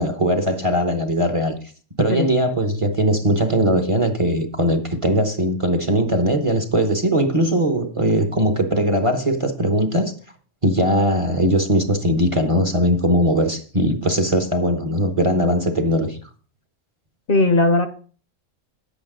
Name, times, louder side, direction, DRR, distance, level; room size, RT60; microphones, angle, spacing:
voice 1, 0.0-1.5 2.0-10.1 10.6-16.2, equal, 30° right, 0.9 m, -20 dB
voice 2, 17.3-17.9, left 2 dB, 50° left, 0.9 m, -17 dB
9.5 x 8.3 x 3.7 m
omnidirectional pair, 1.3 m